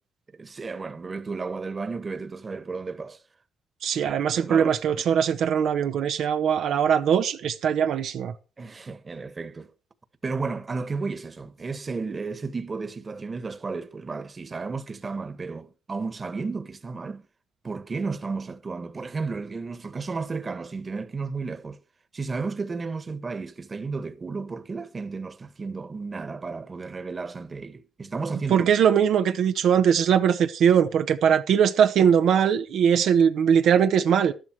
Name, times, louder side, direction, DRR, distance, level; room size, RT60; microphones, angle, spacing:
voice 1, 0.3-3.2 3.9-4.0 4.4-5.0 8.6-9.7 10.2-17.2 17.6-21.8 22.1-28.7, right 4 dB, 30° right, 1.6 m, -33 dB
voice 2, 3.8-8.3 28.5-34.3, right 8 dB, 75° right, 1.1 m, -21 dB
12.5 x 11.5 x 4.7 m
cardioid pair, 90°, 0 cm